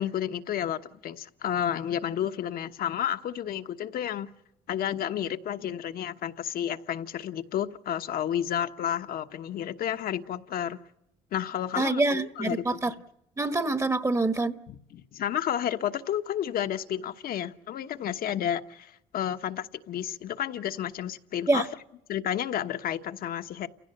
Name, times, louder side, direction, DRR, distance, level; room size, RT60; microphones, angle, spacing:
voice 1, 0.0-4.3 4.7-10.8 11.3-12.8 14.7-21.6 22.1-23.7, left 10 dB, 60° left, 1.2 m, -31 dB
voice 2, 11.8-12.9 13.4-14.6 21.5-21.7, right 2 dB, 15° right, 1.1 m, -26 dB
29.5 x 16.5 x 7.9 m
cardioid pair, 110°, 17 cm